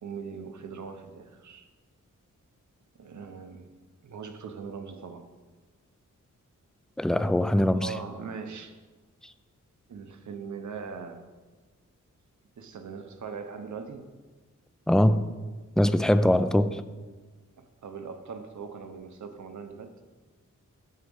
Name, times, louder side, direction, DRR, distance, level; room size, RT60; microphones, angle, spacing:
voice 1, 0.0-1.7 3.0-3.7 4.0-5.3 7.7-8.8 9.9-11.2 12.6-14.1 17.6-19.9, right 5 dB, 65° right, 7 dB, 0.9 m, -40 dB
voice 2, 7.0-7.9 14.9-15.3 15.8-16.8, left 1 dB, ahead, 11 dB, 0.3 m, -22 dB
9.6 x 4.9 x 7.1 m, 1.3 s
wide cardioid pair, 140°, 31 cm